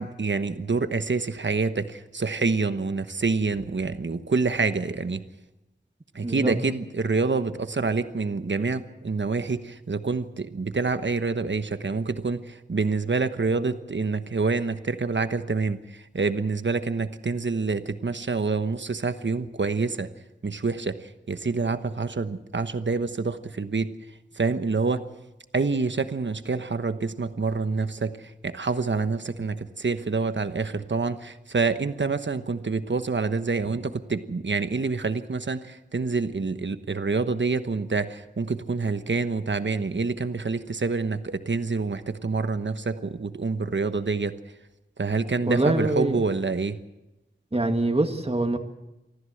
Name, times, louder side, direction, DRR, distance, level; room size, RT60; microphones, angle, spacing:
voice 1, 0.0-5.2 6.1-20.1 20.4-23.9 24.3-25.1 25.5-44.3 45.0-46.8, right 4 dB, 80° right, 10 dB, 1.2 m, -27 dB
voice 2, 6.2-6.6 45.5-46.2 47.5-48.6, right 2 dB, 30° right, 5 dB, 1.9 m, -24 dB
25.0 x 14.5 x 7.9 m, 0.96 s
wide cardioid pair, 55°, 19 cm